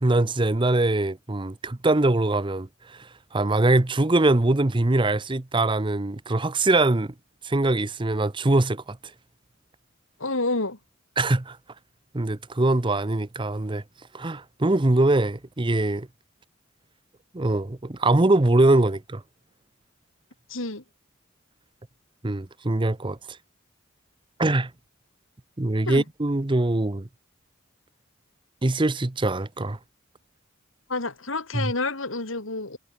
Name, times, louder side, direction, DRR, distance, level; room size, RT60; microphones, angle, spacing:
voice 1, 0.0-7.1 7.4-9.0 11.2-11.6 12.1-13.8 14.1-16.1 17.3-19.2 22.2-23.4 24.4-24.7 25.6-27.0 28.6-29.8 31.5-31.7, right 2 dB, 25° right, 0.8 m, -23 dB
voice 2, 10.2-10.8 20.5-20.8 25.9-26.0 30.9-32.8, left 2 dB, 80° left, 3.8 m, -29 dB
head